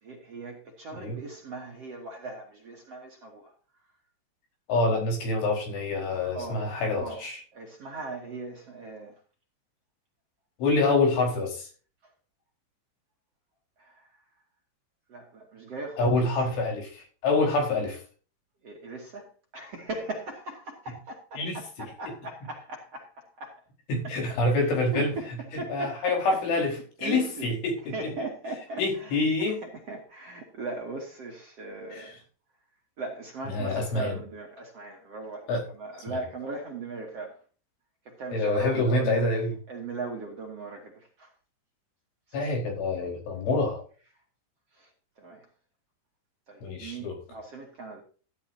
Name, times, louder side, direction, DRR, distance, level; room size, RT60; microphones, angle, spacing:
voice 1, 0.0-3.5 6.3-6.6 6.9-7.2 7.5-9.2 10.9-11.0 12.0-12.1 13.8-14.1 15.1-16.6 18.6-23.6 24.0-24.2 24.5-26.7 27.0-27.5 27.9-32.2 33.0-37.4 38.0-39.3 39.7-41.3 42.4-42.6 44.7-44.9 45.2-45.5 46.5-48.0, right 3 dB, 40° right, 2.6 m, -39 dB
voice 2, 4.7-7.4 10.6-11.7 16.0-18.0 21.4-21.6 23.9-25.1 25.7-26.7 27.0-27.7 28.8-29.6 31.9-32.1 33.5-34.2 35.5-35.6 38.3-39.5 42.3-43.8 46.6-47.1, left 2 dB, 80° left, 7.0 m, -26 dB
15.0 x 11.0 x 2.7 m
omnidirectional pair, 5.4 m